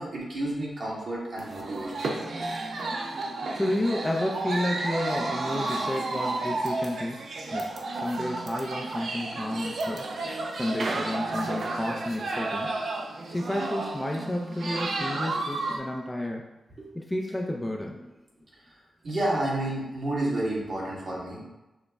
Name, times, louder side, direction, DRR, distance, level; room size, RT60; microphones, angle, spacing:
voice 1, 0.0-2.1 16.8-16.9 18.7-21.4, right 1 dB, 50° right, -5 dB, 1.4 m, -31 dB
sound 1, 1.4-15.8, right 2 dB, 70° right, 0.6 m, -32 dB
voice 2, 3.5-7.2 7.5-10.1 10.6-12.7 13.3-16.4 16.9-18.1, left 1 dB, 10° left, 0 dB, 0.4 m, -31 dB
6.2 x 2.1 x 3.4 m, 1.0 s
wide cardioid pair, 105°, 0 cm